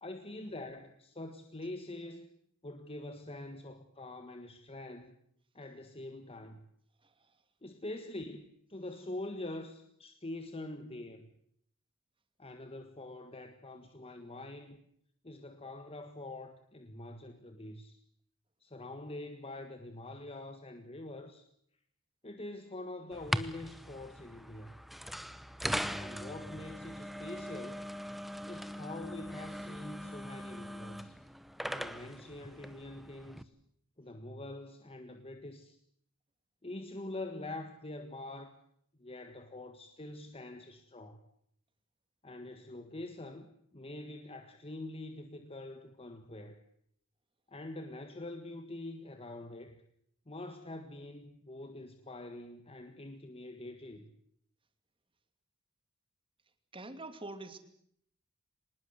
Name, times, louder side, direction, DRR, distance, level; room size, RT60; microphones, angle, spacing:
voice 1, 0.0-2.3 2.6-5.1 5.5-6.7 7.6-11.3 12.4-14.8 15.2-18.0 18.6-21.5 22.2-24.7 25.9-27.8 28.5-31.2 31.7-33.5 34.0-35.8 36.6-38.5 39.0-41.2 42.2-46.6 47.5-49.8 50.3-54.1, left 2 dB, 25° left, 7 dB, 1.7 m, -45 dB
sound 1, 23.1-33.4, equal, ahead, 1.0 m, -40 dB
voice 2, 56.7-57.6, right 2 dB, 25° right, 9 dB, 2.8 m, -44 dB
25.0 x 20.5 x 8.0 m, 0.68 s
head